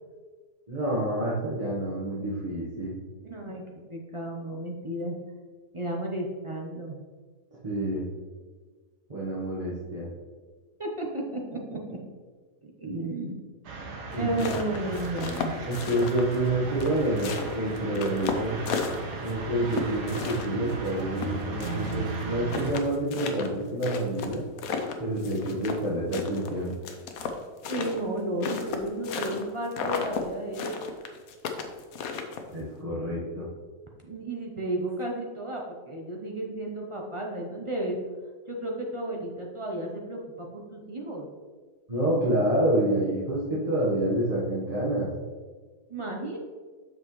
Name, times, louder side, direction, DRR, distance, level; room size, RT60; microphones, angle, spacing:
voice 1, 0.7-2.9 7.6-8.1 9.1-10.1 14.1-14.5 15.6-18.6 19.2-24.4 25.0-26.7 32.5-33.5 41.9-45.1, right 1 dB, 25° right, -7 dB, 1.1 m, -28 dB
voice 2, 3.2-5.2 5.7-7.0 10.8-12.0 12.6-13.4 14.2-15.5 27.7-30.9 34.0-38.0 38.5-41.3 45.9-46.4, right 1 dB, 50° right, 0 dB, 0.3 m, -33 dB
sound 1, 13.6-22.7, right 4 dB, 85° right, 1.6 m, -36 dB
sound 2, 14.1-16.5 16.8-19.3 19.7-21.9 22.2-22.3 22.5-25.9 26.1-29.4 29.7-30.2 30.5-32.6, left 6 dB, 65° left, 1.1 m, -33 dB
7.2 x 6.1 x 3.1 m, 1.5 s
omnidirectional pair, 1.7 m